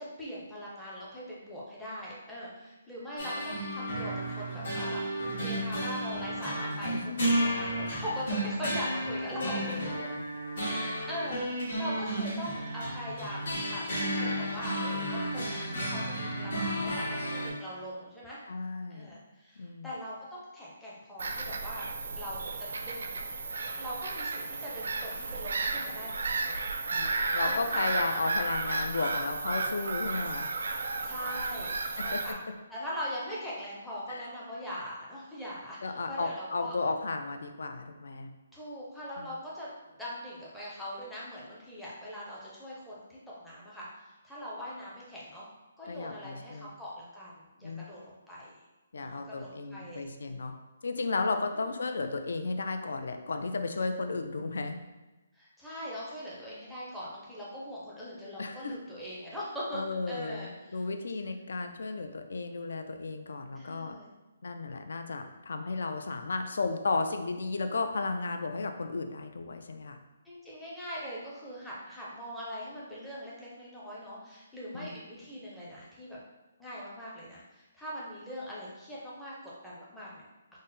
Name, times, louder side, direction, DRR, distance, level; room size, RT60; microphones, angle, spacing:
voice 1, 0.0-9.5 10.6-18.4 18.9-21.9 22.2-23.2 23.8-26.6 27.4-27.8 31.0-32.4 32.7-36.7 38.5-45.5 45.8-48.5 49.0-50.1 51.5-51.8 55.3-59.8 60.1-60.8 63.5-64.1 70.2-76.2 76.6-80.2, equal, ahead, -9 dB, 0.5 m, -41 dB
sound 1, 3.2-17.5, right 1 dB, 55° left, 1.5 m, -32 dB
voice 2, 6.9-7.5 9.6-10.2 18.5-19.1 19.6-19.9 26.9-30.5 32.0-32.2 34.1-34.3 35.8-38.3 39.2-39.3 45.8-46.7 47.6-47.9 48.9-50.5 50.8-54.8 58.4-58.8 59.7-63.9 64.4-70.0 74.7-75.0, left 3 dB, 70° left, 6 dB, 0.4 m, -34 dB
Bird vocalization bird call bird song / Gull seagull, 21.2-32.3, right 3 dB, 65° right, 0.4 m, -33 dB
3.8 x 2.0 x 3.9 m, 1.1 s
hypercardioid pair, 175°, 0 cm